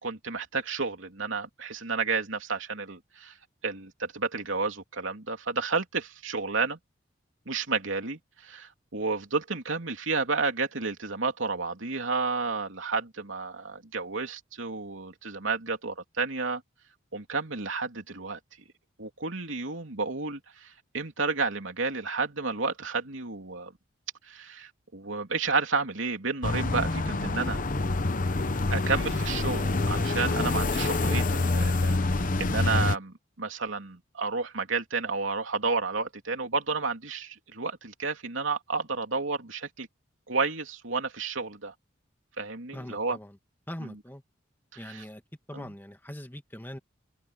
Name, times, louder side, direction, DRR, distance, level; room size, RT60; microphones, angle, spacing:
voice 1, 0.0-3.3 3.6-6.8 7.5-16.6 17.1-18.4 19.0-23.7 24.2-27.6 28.7-39.9 40.3-41.7 42.4-43.2 43.8-43.9 44.8-45.0 45.5-45.7, right 4 dB, 80° right, 3.1 m, -31 dB
sound 1, 26.4-33.0, left 2 dB, 40° left, 0.9 m, -26 dB
voice 2, 42.7-43.4 43.7-44.2 44.8-45.2 45.5-46.8, left 1 dB, 10° left, 2.1 m, -41 dB
head